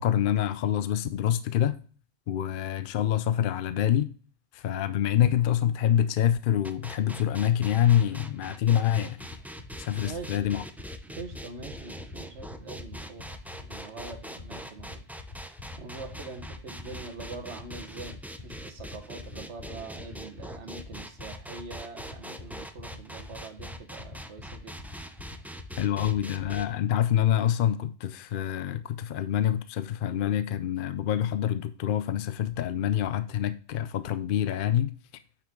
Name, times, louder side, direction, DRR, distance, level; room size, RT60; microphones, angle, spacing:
voice 1, 0.0-1.8 2.3-4.1 4.5-9.2 9.8-10.6 25.8-34.9, left 10 dB, 60° left, 0.6 m, -26 dB
sound 1, 6.6-26.6, equal, 5° right, 0.3 m, -43 dB
sound 2, 9.2-26.6, left 3 dB, 45° left, 2.5 m, -44 dB
voice 2, 9.9-10.5 11.1-15.0 15.8-18.2 18.4-24.7, right 4 dB, 85° right, 1.6 m, -43 dB
8.4 x 5.8 x 3.7 m
omnidirectional pair, 1.1 m